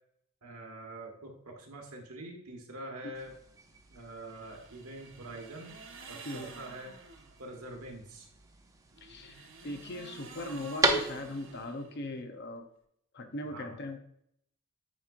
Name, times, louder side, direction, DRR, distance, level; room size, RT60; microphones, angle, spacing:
voice 1, 0.4-3.3 3.9-5.8 6.1-6.9 7.4-8.3 13.5-13.8, right 1 dB, 85° right, 1 dB, 1.6 m, -45 dB
sound 1, 3.1-11.6, right 2 dB, 15° right, 0.6 m, -37 dB
sound 2, 4.3-7.4 8.9-12.2, right 4 dB, 60° right, 1.0 m, -51 dB
voice 2, 9.0-12.7 13.1-14.0, left 1 dB, 50° left, 6 dB, 0.8 m, -39 dB
8.9 x 4.5 x 2.5 m, 0.71 s
head